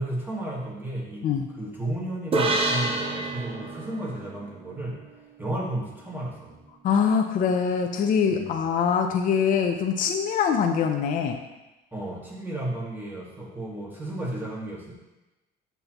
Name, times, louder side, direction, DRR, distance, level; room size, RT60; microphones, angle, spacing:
voice 1, 0.0-1.2 1.6-5.0 5.4-6.6 8.3-8.6 11.9-14.9, right 1 dB, 10° right, -4 dB, 1.8 m, -33 dB
sound 1, 2.3-5.8, right 2 dB, 35° right, 0.9 m, -29 dB
voice 2, 6.8-11.4, left 6 dB, 55° left, 3 dB, 0.6 m, -23 dB
6.8 x 6.1 x 3.0 m, 1.1 s
cardioid pair, 110°, 17 cm